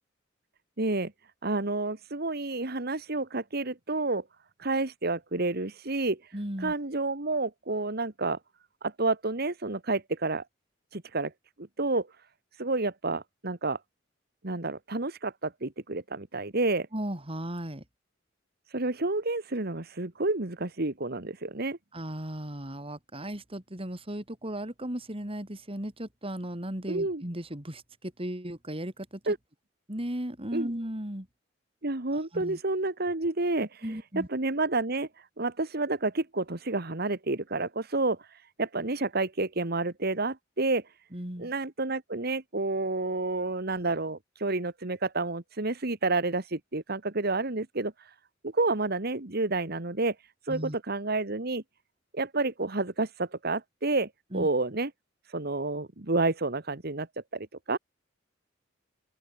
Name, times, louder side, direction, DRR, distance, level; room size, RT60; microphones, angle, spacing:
voice 1, 0.8-1.1 1.4-4.2 4.6-8.4 8.8-10.4 10.9-11.3 11.8-12.1 12.6-13.8 14.4-16.9 18.7-21.8 26.9-27.2 29.3-29.4 30.5-30.7 31.8-33.9 34.3-40.8 41.4-48.1 48.4-50.2 50.4-51.6 52.1-54.9 55.3-57.1 57.3-57.8, right 2 dB, 55° right, 1.9 m, -30 dB
voice 2, 6.3-6.7 16.9-17.8 21.9-29.3 29.9-31.3 32.1-32.6 33.8-34.3 41.1-41.5 50.5-50.8 54.3-54.5, right 1 dB, 30° right, 4.0 m, -36 dB
open air
head